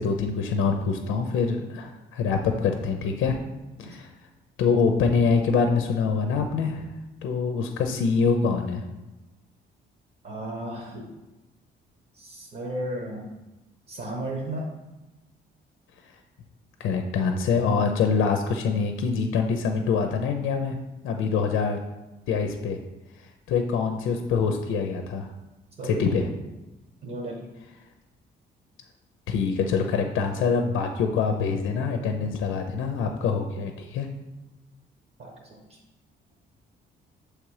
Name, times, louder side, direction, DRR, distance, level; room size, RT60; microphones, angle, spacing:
voice 1, 0.0-3.4 3.8-4.1 4.6-6.9 7.2-8.8 16.0-16.2 16.8-20.8 21.0-21.8 22.3-22.8 23.2-25.3 25.8-26.3 29.3-34.1, left 5 dB, 85° left, 5 dB, 0.6 m, -25 dB
voice 2, 10.2-11.1 12.1-13.3 13.9-14.7 21.2-21.5 25.8-26.3 27.0-27.5 35.2-35.8, right 1 dB, 50° right, 0 dB, 1.2 m, -35 dB
6.7 x 3.3 x 4.8 m, 1.1 s
cardioid pair, 90°, 20 cm